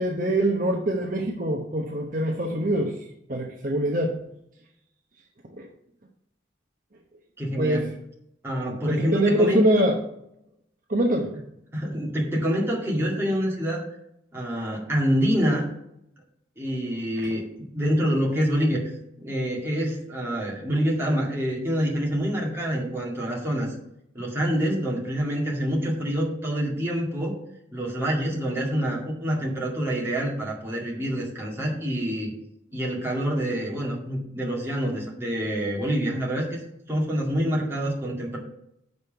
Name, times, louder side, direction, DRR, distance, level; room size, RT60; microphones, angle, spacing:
voice 1, 0.0-2.9 3.3-4.1 5.6-5.7 7.6-7.9 8.9-10.0 10.9-11.4, right 1 dB, 45° right, 1 dB, 0.9 m, -23 dB
voice 2, 7.4-7.9 8.4-9.9 11.7-13.9 14.3-15.7 16.6-18.9 19.2-23.7 24.1-27.4 27.7-32.3 32.7-36.6 36.9-38.4, equal, 15° right, -4 dB, 2.1 m, -26 dB
6.4 x 5.4 x 6.5 m, 0.77 s
head